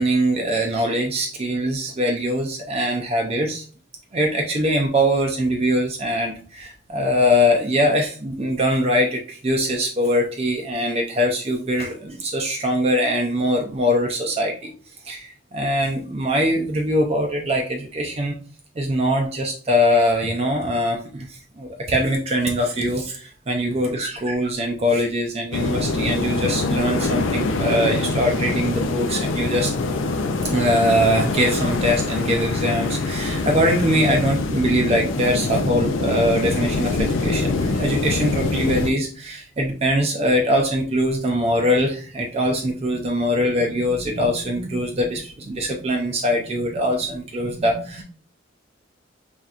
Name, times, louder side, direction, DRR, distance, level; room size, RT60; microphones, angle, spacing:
voice 1, 0.0-3.6 4.1-14.7 15.1-18.3 18.8-29.7 30.4-48.0, equal, 30° right, 2 dB, 0.5 m, -22 dB
sound 1, 25.5-38.9, left 3 dB, 90° left, 0.5 m, -24 dB
4.2 x 3.4 x 2.4 m, 0.41 s
head